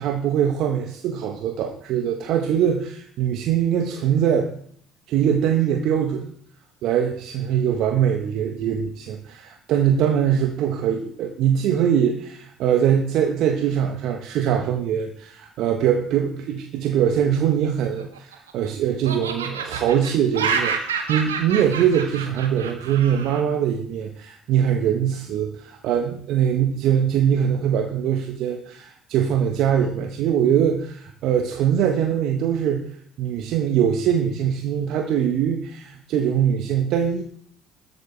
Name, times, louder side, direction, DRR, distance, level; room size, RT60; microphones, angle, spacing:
voice 1, 0.0-4.5 5.1-6.3 6.8-32.8 33.2-37.2, right 9 dB, 60° right, 4 dB, 1.4 m, -22 dB
Laughter, 17.8-18.7 19.0-23.4, right 6 dB, 85° right, 1.7 m, -28 dB
21.0 x 8.8 x 3.5 m, 0.63 s
hypercardioid pair, 60°, 0 cm